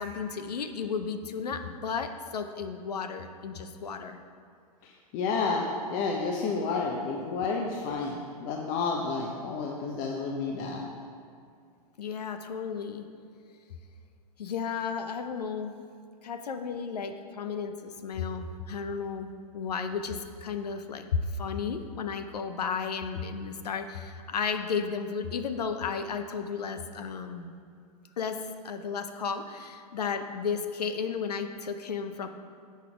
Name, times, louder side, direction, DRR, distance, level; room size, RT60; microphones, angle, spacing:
voice 1, 0.0-4.2 12.0-13.1 14.4-15.8 16.2-19.3 19.5-27.5 28.2-28.4 28.6-32.3, left 6 dB, 85° left, 7 dB, 0.6 m, -33 dB
voice 2, 5.1-5.6 5.9-10.9, left 4 dB, 40° left, 0 dB, 0.8 m, -30 dB
7.3 x 5.6 x 5.0 m, 2.2 s
hypercardioid pair, 105°, 20 cm